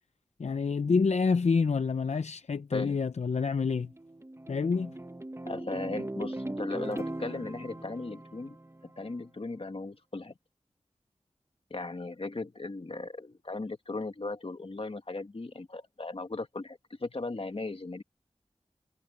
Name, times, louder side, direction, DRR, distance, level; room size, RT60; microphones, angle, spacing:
voice 1, 0.4-3.9 4.5-4.9, left 5 dB, 85° left, 0.6 m, -27 dB
sound 1, 3.7-9.1, right 1 dB, 25° right, 1.0 m, -39 dB
voice 2, 5.4-8.6 8.8-10.3 11.7-18.0, left 3 dB, 60° left, 1.8 m, -37 dB
wide cardioid pair, 40°, 11 cm